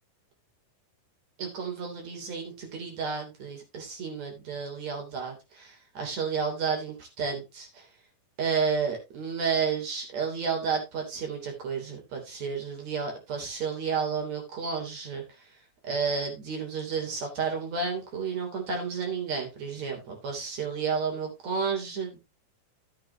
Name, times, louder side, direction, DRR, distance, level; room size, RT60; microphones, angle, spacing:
voice 1, 1.4-7.9 8.4-15.2 15.8-22.2, right 5 dB, 60° right, 2 dB, 4.4 m, -31 dB
13.0 x 8.5 x 2.8 m, 0.23 s
omnidirectional pair, 3.7 m